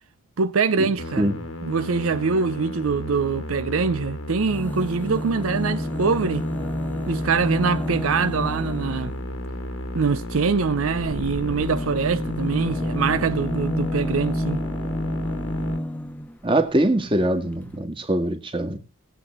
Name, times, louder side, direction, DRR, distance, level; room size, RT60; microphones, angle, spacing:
voice 1, 0.4-1.3 1.6-6.4 7.1-9.2 9.9-14.6, right 5 dB, 85° right, 0.6 m, -24 dB
Musical instrument, 1.0-15.8, left 1 dB, 80° left, 2.0 m, -33 dB
sound 1, 4.4-9.3 10.9-16.4 17.3-17.4 17.6-17.7, equal, 10° left, 0.7 m, -29 dB
voice 2, 16.4-18.8, right 1 dB, 25° right, 1.7 m, -22 dB
18.5 x 7.9 x 4.4 m
head